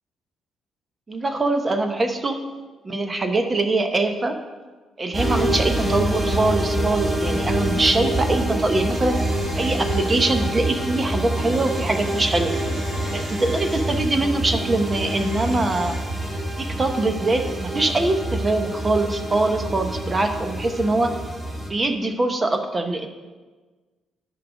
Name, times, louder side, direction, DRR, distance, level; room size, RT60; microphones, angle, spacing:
voice 1, 1.1-2.4 2.8-4.4 5.0-9.2 9.6-12.5 13.1-16.0 16.6-21.1 21.7-23.1, right 2 dB, 30° right, 6 dB, 1.0 m, -23 dB
sound 1, 5.1-21.7, right 1 dB, 10° right, 1.6 m, -26 dB
sound 2, 8.3-16.0, right 1 dB, 85° right, 3.2 m, -41 dB
11.5 x 4.8 x 5.0 m, 1.3 s
cardioid pair, 90°, 0 cm